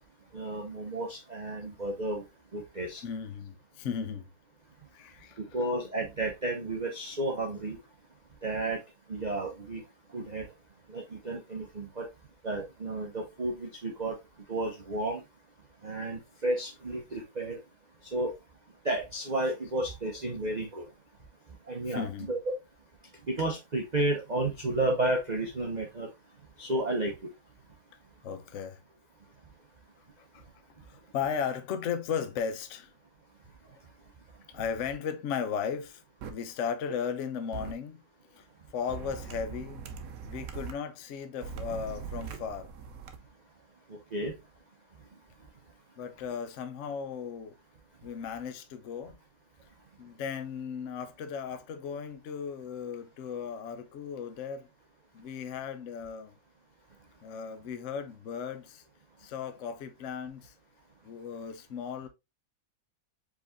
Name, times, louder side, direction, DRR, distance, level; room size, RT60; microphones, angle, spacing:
voice 1, 0.3-2.2 2.5-3.0 5.4-7.8 8.4-8.8 9.1-9.8 10.1-10.5 10.9-12.1 12.4-14.1 14.5-15.2 15.8-17.6 18.1-18.3 18.8-20.8 21.7-22.4 23.3-26.1 26.6-27.1 44.1-44.3, right 2 dB, 90° right, 0.3 m, -32 dB
voice 2, 3.0-4.3 4.9-5.7 21.8-22.4 28.2-28.8 30.3-30.4 30.9-32.9 34.5-36.0 36.3-38.0 38.3-39.8 40.2-42.7 46.0-47.5 48.0-49.2 50.0-54.7 55.1-56.3 57.2-58.8 59.2-60.5 61.0-62.1, left 7 dB, 80° left, 0.6 m, -36 dB
sound 1, 36.2-36.3 37.5-37.7 38.9-40.7 41.4-43.2, right 7 dB, 70° right, 0.8 m, -41 dB
4.9 x 4.0 x 2.6 m
omnidirectional pair, 2.2 m